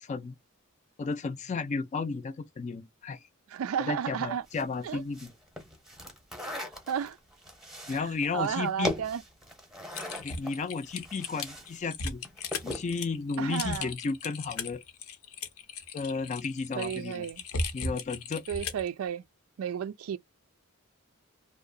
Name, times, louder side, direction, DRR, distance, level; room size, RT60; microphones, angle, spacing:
voice 1, 0.0-0.4 1.0-3.2 3.8-5.3 7.9-8.9 10.2-12.2 12.6-14.8 15.9-17.3 17.7-18.4, left 4 dB, 35° left, 0.4 m, -33 dB
voice 2, 3.5-4.4 4.8-5.0 6.4-7.2 8.3-9.2 13.4-13.9 16.8-17.4 18.5-19.2 19.6-20.2, right 8 dB, 70° right, 0.3 m, -33 dB
sound 1, 4.4-11.8 12.1-12.9, equal, ahead, 0.8 m, -40 dB
Typing, 9.9-18.9, left 3 dB, 90° left, 0.7 m, -37 dB
2.7 x 2.0 x 2.5 m
head